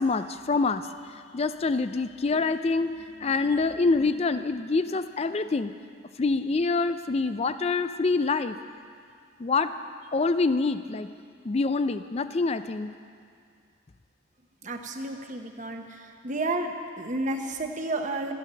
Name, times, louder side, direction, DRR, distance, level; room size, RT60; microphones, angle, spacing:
voice 1, 0.0-2.9 3.2-5.7 6.2-8.6 9.4-9.7 10.1-11.1 11.4-12.9, left 3 dB, 30° left, 11 dB, 0.4 m, -26 dB
voice 2, 14.6-18.3, right 2 dB, 35° right, 4 dB, 1.0 m, -31 dB
14.0 x 9.9 x 7.6 m, 2.2 s
head